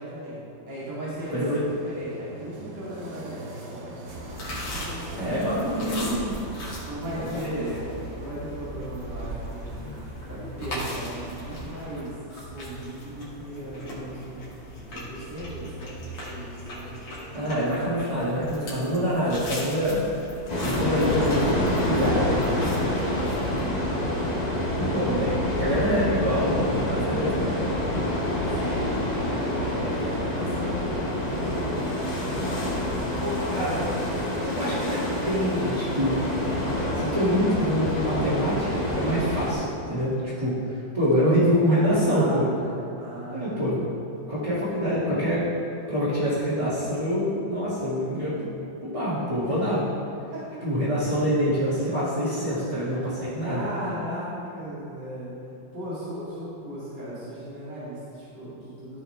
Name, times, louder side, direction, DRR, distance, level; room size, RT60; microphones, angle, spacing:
voice 1, 0.0-4.0 4.3-4.7 5.0-6.1 6.9-7.8 8.1-14.4 14.8-17.3 17.9-18.0 18.7-19.9 24.4-25.2 28.6-29.2 29.6-31.2 32.1-32.8 41.2-41.4 41.7-43.7 44.0-44.3 49.5-49.6 50.3-50.5 53.4-55.4 55.7-59.0, right 1 dB, 60° right, -10 dB, 3.0 m, -37 dB
sound 1, 1.2-12.2, right 1 dB, 85° right, 2.0 m, -43 dB
voice 2, 1.3-1.6 5.2-6.3 7.3-7.7 17.3-20.0 20.6-22.9 24.2-24.3 24.8-27.9 33.2-33.8 34.4-36.4 36.9-42.4 43.3-43.9 44.3-45.4 45.9-48.5 48.8-49.9 50.6-53.7, equal, 15° right, -12 dB, 1.9 m, -26 dB
sound 2, 4.0-23.6, equal, 80° left, 2.8 m, -38 dB
sound 3, 20.5-39.5, left 1 dB, 25° left, 1.0 m, -27 dB
15.0 x 5.5 x 3.3 m, 2.7 s
omnidirectional pair, 2.1 m